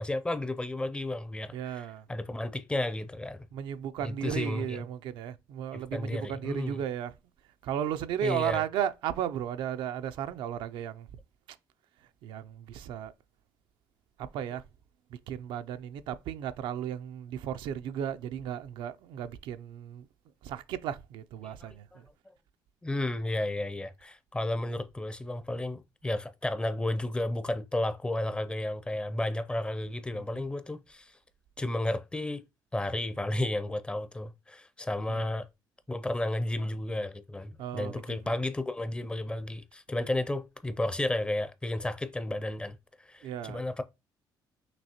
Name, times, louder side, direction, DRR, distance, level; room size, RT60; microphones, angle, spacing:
voice 1, 0.0-3.5 4.0-4.8 5.7-6.8 8.2-8.6 21.4-22.0 22.8-31.2 31.6-32.4 32.7-35.5 35.9-43.8, left 1 dB, 10° left, 0.4 m, -33 dB
voice 2, 1.5-2.1 3.5-7.1 7.6-11.1 11.5-11.6 12.2-13.1 14.2-14.6 15.1-20.1 20.4-22.1 30.3-30.4 35.1-35.3 37.6-38.2 43.2-43.6, right 9 dB, 80° right, 0.4 m, -35 dB
5.9 x 2.7 x 2.8 m
cardioid pair, 110°, 8 cm